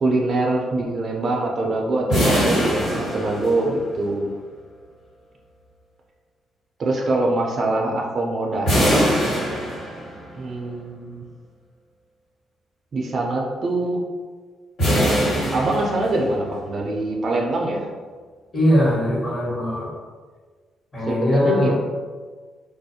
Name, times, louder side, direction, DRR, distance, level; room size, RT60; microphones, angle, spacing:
voice 1, 0.0-4.3 6.8-9.1 10.3-11.3 12.9-14.0 15.5-17.9 21.1-21.7, right 2 dB, 50° right, 0 dB, 0.4 m, -23 dB
sound 1, 2.1-4.0 8.7-10.3 14.8-16.4, equal, 85° left, 1.5 m, -22 dB
voice 2, 18.5-19.9 20.9-21.7, left 1 dB, 35° left, -7 dB, 1.2 m, -20 dB
2.4 x 2.1 x 2.7 m, 1.5 s
cardioid pair, 90°, 0 cm